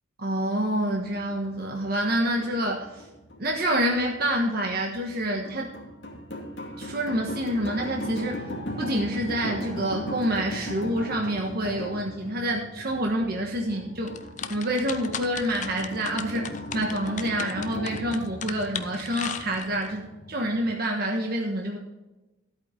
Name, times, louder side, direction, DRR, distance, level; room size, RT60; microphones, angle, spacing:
voice 1, 0.2-3.0 3.4-5.7 6.8-8.4 8.8-14.2 14.5-21.8, right 1 dB, 50° right, 0 dB, 1.4 m, -27 dB
sound 1, 0.9-20.8, left 1 dB, 60° left, 2.4 m, -38 dB
sound 2, 14.1-19.9, left 8 dB, 40° left, 0.6 m, -36 dB
13.0 x 8.6 x 3.9 m, 1.1 s
head